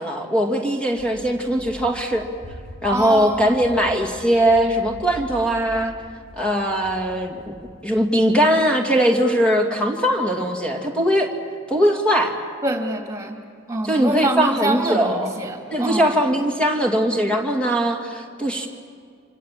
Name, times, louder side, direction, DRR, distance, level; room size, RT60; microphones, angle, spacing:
voice 1, 0.0-2.2 2.8-5.9 6.4-7.5 7.8-11.3 11.7-12.3 13.9-15.3 15.7-18.7, equal, 5° left, 1 dB, 2.6 m, -20 dB
Run, 0.9-7.9, equal, 65° left, 6.1 m, -42 dB
voice 2, 2.9-3.7 12.6-13.4 13.7-16.2, right 2 dB, 15° right, 2 dB, 2.9 m, -25 dB
27.5 x 26.5 x 7.7 m, 2.2 s
head